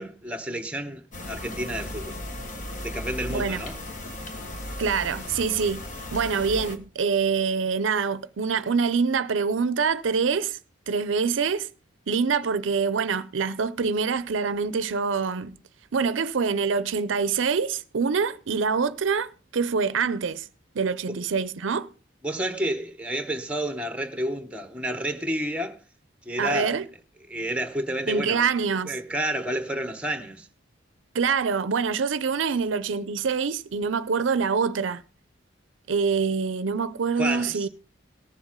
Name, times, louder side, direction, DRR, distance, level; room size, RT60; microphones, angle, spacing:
voice 1, 0.0-2.2 2.8-3.8 21.1-21.2 22.2-25.8 26.3-26.8 27.3-28.5 28.8-30.5 37.2-37.7, right 1 dB, 5° right, 1.0 m, -30 dB
sound 1, 1.1-6.8, left 1 dB, 40° left, 1.4 m, -36 dB
voice 2, 3.3-3.6 4.8-5.8 6.1-10.6 10.9-11.7 12.1-15.6 15.9-20.5 20.7-21.9 26.4-26.8 28.1-28.9 31.1-35.0 35.9-37.7, right 5 dB, 80° right, 0.5 m, -25 dB
19.0 x 7.2 x 3.7 m
head